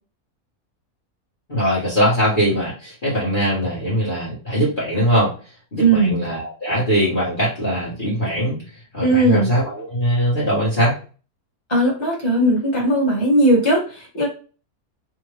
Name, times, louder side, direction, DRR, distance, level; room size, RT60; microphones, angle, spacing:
voice 1, 1.5-5.3 5.7-8.6 8.9-11.0, equal, 35° left, -8 dB, 1.5 m, -21 dB
voice 2, 5.8-6.2 9.0-9.5 11.7-14.3, right 1 dB, 20° left, -4 dB, 1.6 m, -18 dB
3.5 x 2.5 x 3.4 m, 0.37 s
omnidirectional pair, 1.5 m